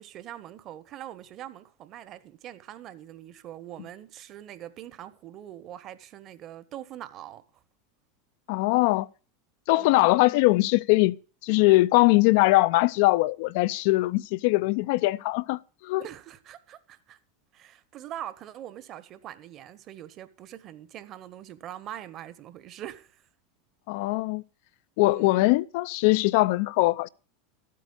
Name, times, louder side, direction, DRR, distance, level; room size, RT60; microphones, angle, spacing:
voice 1, 0.0-7.6 9.8-10.2 16.0-17.2 17.5-23.3 25.1-25.5, right 12 dB, 45° right, 1.3 m, -43 dB
voice 2, 8.5-9.1 9.7-11.2 11.4-16.0 23.9-24.4 25.0-27.1, left 20 dB, 60° left, 0.5 m, -21 dB
13.5 x 8.4 x 5.5 m
hypercardioid pair, 90°, 0 cm